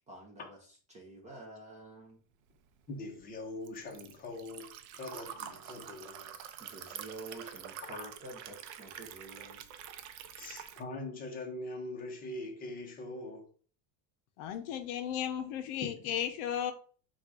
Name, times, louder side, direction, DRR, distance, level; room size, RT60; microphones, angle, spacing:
voice 1, 0.1-0.6 0.9-2.2 6.6-9.6 10.0-10.2, right 2 dB, 15° right, 0.5 m, -49 dB
Liquid, 2.6-10.8, right 9 dB, 65° right, 0.6 m, -47 dB
voice 2, 2.9-7.0 7.8-8.1 9.4-9.5 10.3-13.5 15.8-16.1, left 2 dB, 20° left, 0.8 m, -43 dB
voice 3, 14.4-16.7, left 10 dB, 60° left, 0.7 m, -35 dB
4.2 x 2.4 x 4.6 m
cardioid pair, 175°, 45 cm